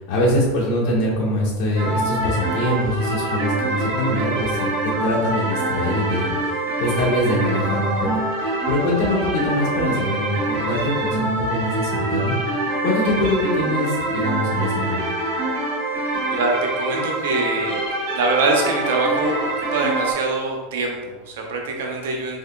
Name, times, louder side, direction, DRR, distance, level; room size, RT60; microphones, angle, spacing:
voice 1, 0.0-8.1 8.4-12.5 12.8-15.0, left 1 dB, 55° left, -5 dB, 1.5 m, -23 dB
sound 1, 1.7-20.1, right 2 dB, 65° right, 1.5 m, -25 dB
voice 2, 16.3-17.8 18.1-22.4, right 3 dB, 80° right, 1 dB, 0.8 m, -24 dB
3.8 x 3.5 x 2.3 m, 1.3 s
supercardioid pair, 130°, 0 cm